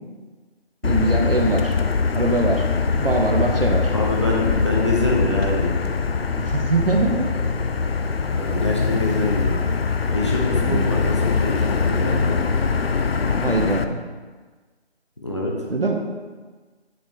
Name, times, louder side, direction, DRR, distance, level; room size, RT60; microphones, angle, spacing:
Motor vehicle (road), 0.8-13.8, left 4 dB, 60° left, 0.5 m, -22 dB
voice 1, 0.8-1.8 2.1-2.6 3.0-3.9 6.4-7.3 10.6-10.9 13.4-14.0 15.7-16.0, right 2 dB, 60° right, 2 dB, 1.0 m, -22 dB
voice 2, 3.9-5.8 8.3-9.6 10.1-12.4 15.2-15.5, left 2 dB, 25° left, -3 dB, 0.8 m, -25 dB
8.8 x 5.0 x 3.6 m, 1.4 s
figure-of-eight pair, 165°, 33 cm